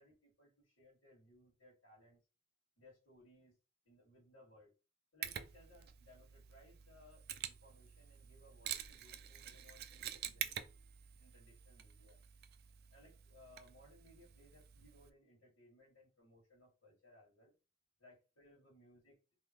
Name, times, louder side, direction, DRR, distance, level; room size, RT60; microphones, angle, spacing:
voice 1, 0.0-0.5 0.8-2.2 2.8-3.6 3.8-4.7 5.1-10.7 11.2-12.2 12.9-17.5 18.0-19.2, left 1 dB, 70° left, -6 dB, 1.9 m, -64 dB
Mechanisms, 5.2-15.1, right 10 dB, 50° right, 0.4 m, -48 dB
3.6 x 2.9 x 2.8 m, 0.30 s
head